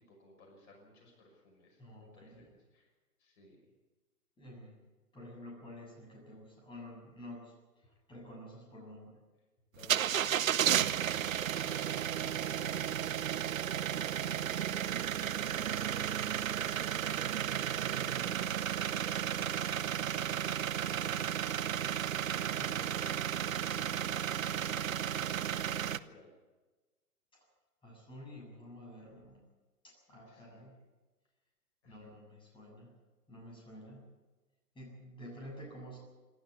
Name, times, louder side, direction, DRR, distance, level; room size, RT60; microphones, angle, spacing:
voice 1, 0.0-2.9 3.2-3.7 9.7-26.3 30.2-30.7 31.8-32.0, left 2 dB, 45° left, 1 dB, 5.9 m, -58 dB
voice 2, 1.8-2.5 4.4-4.8 5.1-9.2 15.7-15.8 22.7-22.8 27.8-29.4 29.8-30.7 31.9-33.0 33.3-34.0 34.7-36.0, left 1 dB, 10° left, -2 dB, 7.5 m, -50 dB
sound 1, 9.8-26.0, right 10 dB, 60° right, 0.9 m, -33 dB
27.5 x 12.5 x 8.3 m, 1.2 s
figure-of-eight pair, 120°, 46 cm